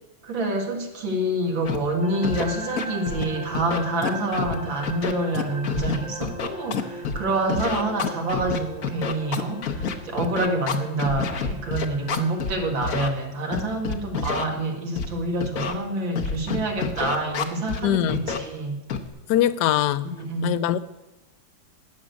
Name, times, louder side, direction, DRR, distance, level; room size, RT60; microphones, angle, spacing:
voice 1, 0.2-18.8 20.0-20.6, right 2 dB, 70° right, 2 dB, 2.5 m, -27 dB
Scratching (performance technique), 1.6-1.8 2.2-2.4 2.8-3.2 3.5-4.5 4.8-7.2 7.5-12.5 12.8-13.1 13.5-14.4 15.0-15.1 15.4-15.7 16.1-17.8 18.1-18.4 18.9-19.1, left 6 dB, 55° left, 1.2 m, -27 dB
sound 1, 2.0-12.8, equal, 30° left, 1.0 m, -39 dB
voice 2, 17.8-18.2 19.3-20.1 20.4-20.8, left 11 dB, 70° left, 15 dB, 1.0 m, -22 dB
12.5 x 6.6 x 9.2 m, 1.0 s
omnidirectional pair, 2.2 m